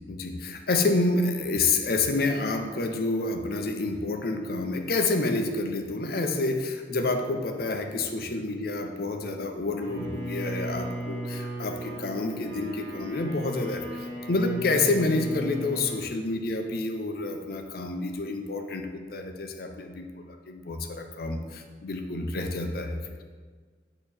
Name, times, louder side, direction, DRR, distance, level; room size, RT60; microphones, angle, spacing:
voice 1, 0.1-23.0, left 3 dB, 55° left, 5 dB, 0.6 m, -28 dB
Bowed string instrument, 9.8-16.1, right 1 dB, 80° right, 1.4 m, -37 dB
8.4 x 2.9 x 4.4 m, 1.5 s
head